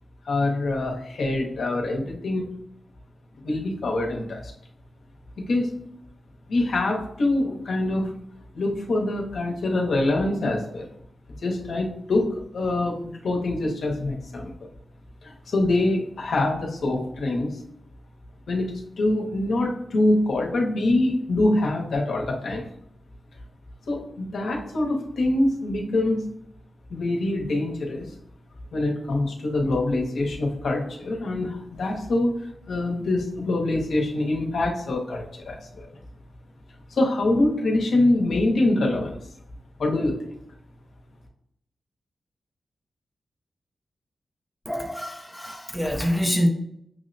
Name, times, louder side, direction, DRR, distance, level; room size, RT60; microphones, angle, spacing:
voice 1, 0.2-2.5 3.4-4.5 5.4-5.7 6.5-8.1 8.5-10.9 11.4-14.5 15.2-17.6 18.5-22.6 23.9-26.3 26.9-28.1 28.7-35.9 36.9-39.2 39.8-40.3, left 2 dB, 70° left, 1 dB, 0.7 m, -25 dB
voice 2, 44.7-46.5, equal, ahead, 1 dB, 0.4 m, -25 dB
6.1 x 2.0 x 2.6 m, 0.73 s
wide cardioid pair, 165°, 0 cm